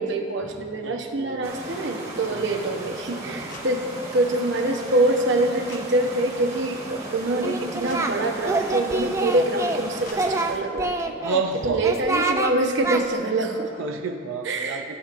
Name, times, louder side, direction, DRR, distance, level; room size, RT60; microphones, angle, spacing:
voice 1, 0.0-10.9 11.6-13.7 14.4-15.0, right 2 dB, 65° right, 3 dB, 0.9 m, -25 dB
voice 2, 0.8-1.6 2.3-2.7 3.2-3.6 11.2-11.8 13.8-14.9, right 4 dB, 85° right, 4 dB, 0.5 m, -30 dB
sound 1, 1.4-10.5, right 1 dB, 30° right, 1.7 m, -37 dB
sound 2, 3.5-3.7 5.7-5.8 7.9-8.0 10.0-10.2 12.2-12.4, left 4 dB, 40° left, 0.8 m, -42 dB
Singing, 7.4-8.1 8.4-9.8 10.1-11.4 11.8-12.5 12.8-13.0, right 2 dB, 15° right, 0.3 m, -26 dB
15.5 x 8.3 x 2.5 m, 2.3 s
head